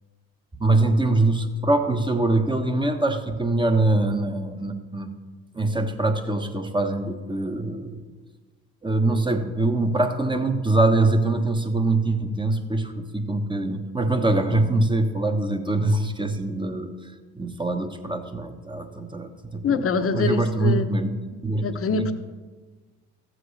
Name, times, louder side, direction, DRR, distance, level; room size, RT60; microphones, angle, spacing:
voice 1, 0.6-5.1 5.5-8.0 8.8-21.1 21.4-21.6 21.9-22.0, right 2 dB, 15° right, 6 dB, 1.2 m, -23 dB
voice 2, 19.6-20.9 21.6-22.1, left 4 dB, 45° left, 8 dB, 1.0 m, -24 dB
14.5 x 7.7 x 3.3 m, 1.4 s
hypercardioid pair, 65°, 32 cm